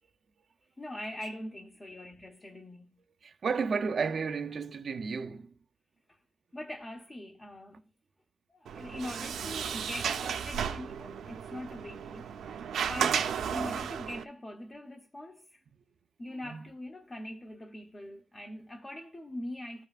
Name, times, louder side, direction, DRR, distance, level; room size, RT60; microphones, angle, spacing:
voice 1, 0.8-3.0 6.1-6.2 6.5-7.8 8.5-12.6 12.9-13.2 13.5-15.6 16.2-19.9, left 1 dB, 20° left, 0.8 m, -42 dB
voice 2, 3.2-5.6 8.7-8.9 11.1-11.3 12.9-13.1 16.3-16.7, right 5 dB, 40° right, 0.5 m, -33 dB
Sliding door, 8.7-14.2, right 7 dB, 80° right, 0.8 m, -34 dB
14.0 x 5.4 x 2.5 m
wide cardioid pair, 165°, 0 cm